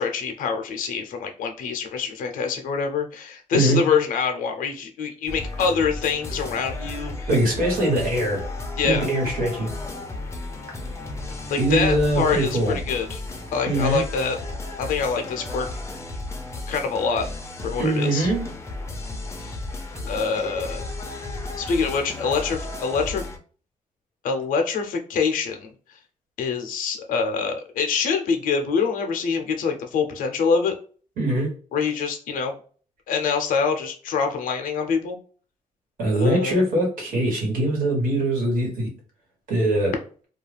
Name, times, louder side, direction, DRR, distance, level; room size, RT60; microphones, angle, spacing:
voice 1, 0.0-7.3 8.8-9.1 11.5-13.2 13.5-14.4 14.8-15.7 16.7-17.3 17.6-18.3 19.4-19.6 20.1-20.8 21.6-23.2 24.2-25.7 26.4-30.7 31.7-32.5 33.1-35.2 36.1-36.6, left 5 dB, 85° left, 4 dB, 0.5 m, -25 dB
sound 1, 5.3-23.4, left 2 dB, 20° left, 0.5 m, -34 dB
voice 2, 7.3-8.4 8.8-9.7 11.6-12.8 13.7-14.0 17.8-18.5 31.2-31.5 36.0-38.9 39.5-39.9, right 1 dB, 90° right, -1 dB, 1.3 m, -22 dB
2.3 x 2.3 x 3.2 m, 0.41 s
cardioid pair, 120°, 14 cm